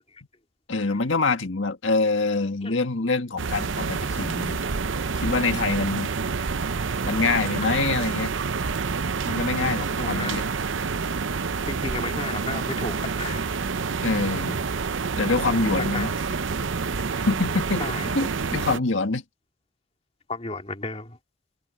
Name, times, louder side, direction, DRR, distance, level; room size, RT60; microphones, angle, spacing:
voice 1, 0.7-4.6 5.2-6.1 7.0-8.3 9.2-10.4 14.0-14.6 15.2-16.1 17.3-17.8 18.2-19.2, left 3 dB, 80° left, 1.8 m, -25 dB
sound 1, 3.4-18.8, right 4 dB, 75° right, 0.7 m, -28 dB
voice 2, 7.6-8.0 10.0-10.4 11.7-13.9 15.3-16.5 17.2-17.3 17.8-18.1 20.3-21.2, left 3 dB, 30° left, 2.3 m, -34 dB
head